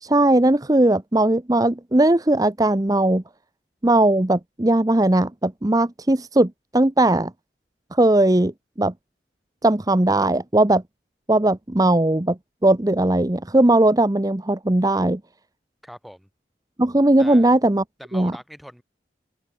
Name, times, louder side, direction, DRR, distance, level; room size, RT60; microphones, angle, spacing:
voice 1, 0.0-3.2 3.8-7.3 7.9-8.5 8.8-8.9 9.6-10.8 11.3-15.2 16.8-17.8 18.1-18.3, right 1 dB, 20° right, 0.8 m, -18 dB
voice 2, 15.8-16.3 17.2-17.5 18.0-18.8, equal, ahead, 6.3 m, -41 dB
open air
head